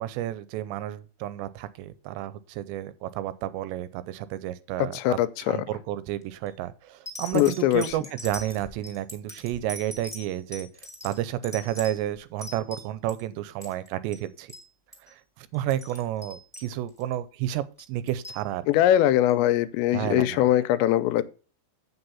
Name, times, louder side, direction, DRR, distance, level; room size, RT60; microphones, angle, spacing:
voice 1, 0.0-5.2 5.5-10.7 11.0-14.5 15.1-18.6 19.9-20.4, right 13 dB, 90° right, 2.9 m, -31 dB
voice 2, 4.8-5.6 7.3-7.9 18.7-21.2, left 13 dB, 85° left, 2.9 m, -22 dB
sound 1, 6.2-6.5 7.0-13.2 13.5-13.9 14.1-14.2 14.5-14.7 14.9-15.1 15.5-17.1 17.8-18.4 19.3-19.4, left 1 dB, ahead, 1.4 m, -42 dB
8.0 x 6.1 x 5.5 m
omnidirectional pair, 5.0 m